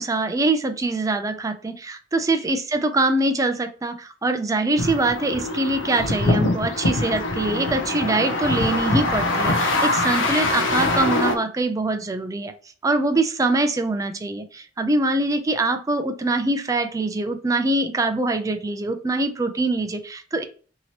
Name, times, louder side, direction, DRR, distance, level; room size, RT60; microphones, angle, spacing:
voice 1, 0.0-12.5 12.8-20.5, right 2 dB, 15° right, 7 dB, 0.3 m, -23 dB
sound 1, 4.8-11.4, left 2 dB, 75° left, 0.6 m, -23 dB
2.9 x 2.8 x 2.8 m, 0.39 s
head